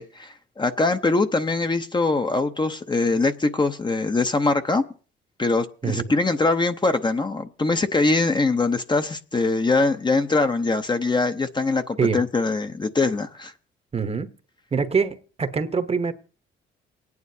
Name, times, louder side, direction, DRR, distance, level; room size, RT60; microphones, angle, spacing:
voice 1, 0.0-4.8 5.4-13.5, left 3 dB, 25° left, 0.7 m, -22 dB
voice 2, 5.8-6.2 12.0-12.2 13.9-14.3 14.7-16.1, right 5 dB, 30° right, 0.9 m, -24 dB
28.0 x 9.5 x 2.7 m
cardioid pair, 90°, 20 cm